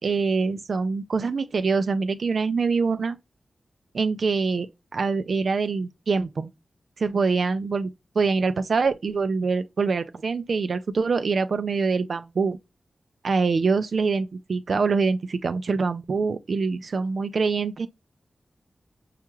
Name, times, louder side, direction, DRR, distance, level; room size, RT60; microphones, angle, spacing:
voice 1, 0.0-3.2 3.9-6.5 7.0-7.9 8.2-12.6 13.2-17.9, right 4 dB, 60° right, 0.4 m, -24 dB
5.6 x 2.3 x 2.9 m
wide cardioid pair, 145°, 0 cm